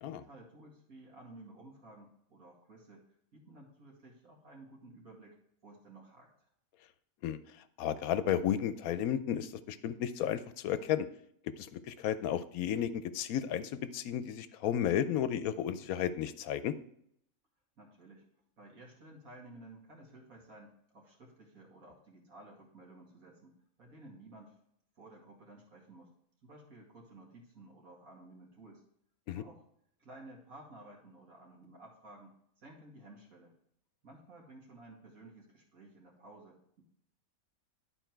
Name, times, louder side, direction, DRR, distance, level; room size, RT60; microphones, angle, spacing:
voice 1, 0.0-3.0 3.3-5.4 5.6-6.3 17.8-18.3 18.6-24.6 25.0-26.1 26.4-28.8 29.3-29.6 30.0-33.5 34.0-36.8, right 2 dB, 70° right, -2 dB, 2.5 m, -54 dB
voice 2, 7.8-11.1 11.6-16.8 29.3-29.4, left 10 dB, 80° left, 13 dB, 1.0 m, -33 dB
11.5 x 4.4 x 4.5 m, 0.71 s
omnidirectional pair, 1.5 m